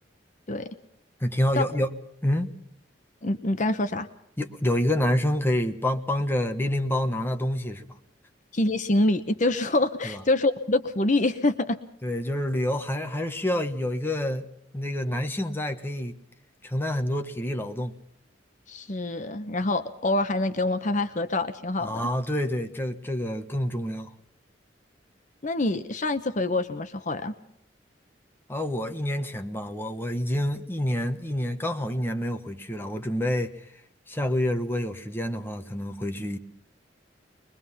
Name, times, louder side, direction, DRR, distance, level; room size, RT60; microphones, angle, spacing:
voice 1, 1.2-1.9 2.2-2.5 4.4-7.9 10.0-10.2 12.0-14.5 14.7-16.1 16.6-17.9 21.8-24.1 28.5-33.6 34.1-36.4, left 1 dB, 15° left, 1.3 m, -27 dB
voice 2, 3.2-4.1 8.5-11.8 18.7-21.9 25.4-27.3, left 2 dB, 45° left, 0.9 m, -25 dB
23.0 x 22.0 x 5.6 m
head